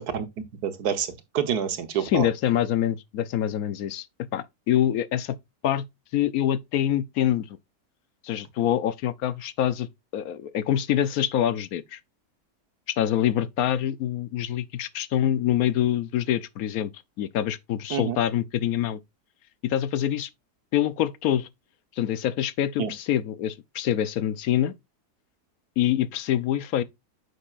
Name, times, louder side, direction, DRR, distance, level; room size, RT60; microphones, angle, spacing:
voice 1, 0.6-2.3 17.9-18.2 22.8-22.9, right 8 dB, 85° right, 1.6 m, -27 dB
voice 2, 2.0-4.1 4.3-5.4 5.6-5.8 6.1-7.6 8.2-9.9 10.1-12.0 12.9-16.9 17.2-19.0 19.6-20.3 20.7-21.5 22.0-24.7 25.8-26.8, left 11 dB, 70° left, 1.1 m, -25 dB
9.2 x 6.6 x 2.4 m
omnidirectional pair, 1.6 m